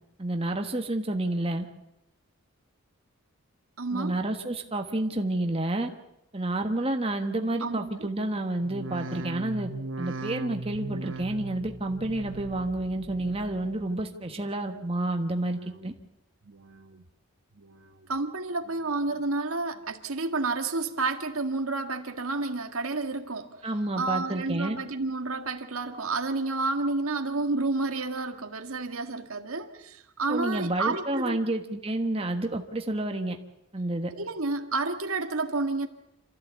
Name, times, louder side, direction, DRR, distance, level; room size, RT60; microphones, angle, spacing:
voice 1, 0.2-1.7 3.9-5.9 6.3-9.7 10.0-15.9 23.6-24.8 30.3-33.4 33.7-34.1, right 1 dB, 25° right, 4 dB, 1.3 m, -29 dB
voice 2, 3.8-4.2 7.6-8.1 18.1-23.6 24.0-31.4 34.2-35.9, right 3 dB, 85° right, 6 dB, 1.8 m, -30 dB
sound 1, 8.6-13.9 14.2-14.9 15.3-16.0 16.4-17.1 17.5-18.2 18.6-19.2 19.8-19.9, right 3 dB, 65° right, 1.0 m, -40 dB
26.5 x 14.5 x 8.3 m, 0.86 s
head